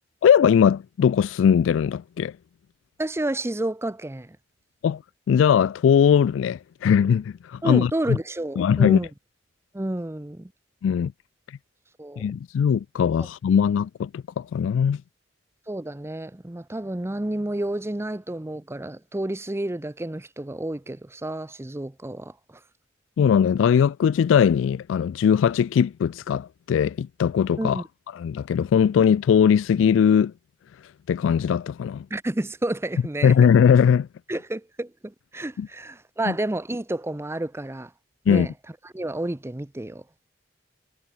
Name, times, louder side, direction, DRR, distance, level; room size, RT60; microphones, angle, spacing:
voice 1, 0.2-2.3 4.8-5.0 5.3-7.9 8.6-9.0 10.8-11.1 11.5-11.6 12.2-15.0 23.2-27.8 28.2-30.3 31.1-32.1 33.2-34.1 35.6-35.7 38.3-38.5, left 7 dB, 85° left, 0.3 m, -20 dB
voice 2, 3.0-4.4 7.6-9.1 9.7-10.5 12.0-12.3 15.7-22.6 27.6-27.8 32.1-33.3 34.3-37.9 38.3-38.5 38.8-40.0, right 1 dB, 15° right, 0.6 m, -30 dB
head